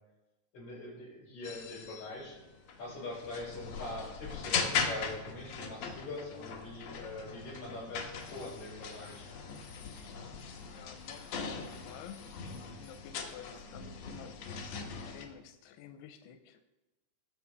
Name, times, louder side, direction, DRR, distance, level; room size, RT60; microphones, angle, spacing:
voice 1, 0.5-2.4 2.8-9.3, left 2 dB, 45° left, -4 dB, 5.6 m, -43 dB
sound 1, 1.4-15.2, left 5 dB, 70° left, 1.6 m, -40 dB
voice 2, 10.7-16.7, left 8 dB, 90° left, 7 dB, 2.7 m, -52 dB
20.5 x 6.8 x 3.4 m, 1.1 s
omnidirectional pair, 4.7 m